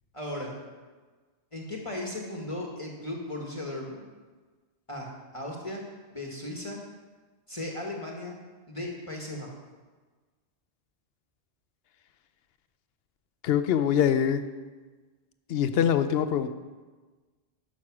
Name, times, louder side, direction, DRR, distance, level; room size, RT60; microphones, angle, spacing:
voice 1, 0.1-0.5 1.5-4.0 4.9-5.1 5.3-5.8 6.1-6.8 7.5-8.4 8.7-9.5, left 1 dB, 30° left, -1 dB, 1.4 m, -36 dB
voice 2, 13.4-14.4 15.5-16.5, left 8 dB, 65° left, 11 dB, 0.8 m, -24 dB
11.0 x 6.3 x 6.0 m, 1.3 s
omnidirectional pair, 1.1 m